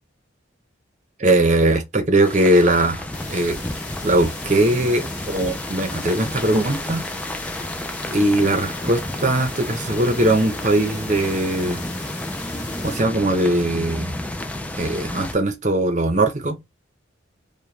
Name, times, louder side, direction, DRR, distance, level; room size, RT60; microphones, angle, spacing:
voice 1, 1.2-3.6 4.0-7.0 8.1-11.8 12.8-14.2 14.7-16.6, right 1 dB, 35° right, 0.8 m, -20 dB
sound 1, 2.2-15.3, left 1 dB, 5° left, 0.4 m, -31 dB
sound 2, 3.1-13.0, left 3 dB, 45° left, 2.6 m, -39 dB
4.8 x 2.3 x 3.3 m
head